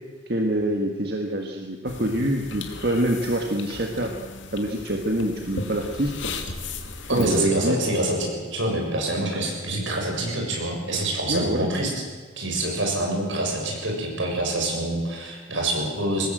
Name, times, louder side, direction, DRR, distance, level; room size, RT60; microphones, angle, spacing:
voice 1, 0.3-4.1 4.5-6.1 7.1-7.8 11.3-11.7, right 1 dB, 55° right, 2 dB, 1.7 m, -25 dB
sound 1, 1.9-7.5, left 3 dB, 75° left, 2.5 m, -36 dB
voice 2, 7.1-11.9 12.4-16.3, right 1 dB, 80° right, 1 dB, 7.1 m, -26 dB
24.0 x 19.5 x 7.9 m, 1.5 s
head